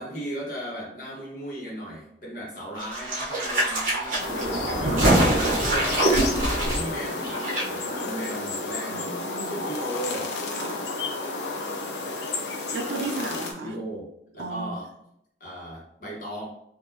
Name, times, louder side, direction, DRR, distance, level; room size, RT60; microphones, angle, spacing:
voice 1, 0.0-4.2 4.8-9.1 9.4-10.2 13.6-14.1 14.3-14.9 15.4-16.5, equal, 50° left, 1.2 m, -36 dB
sound 1, 2.8-7.6 7.9-8.0, right 1 dB, 50° right, 1.1 m, -24 dB
sound 2, 4.2-13.5, left 3 dB, 80° left, 0.6 m, -31 dB
voice 2, 8.9-9.6 10.6-10.8 12.7-13.8 14.4-14.8, right 3 dB, 85° right, 0.4 m, -34 dB
3.7 x 2.6 x 2.8 m
head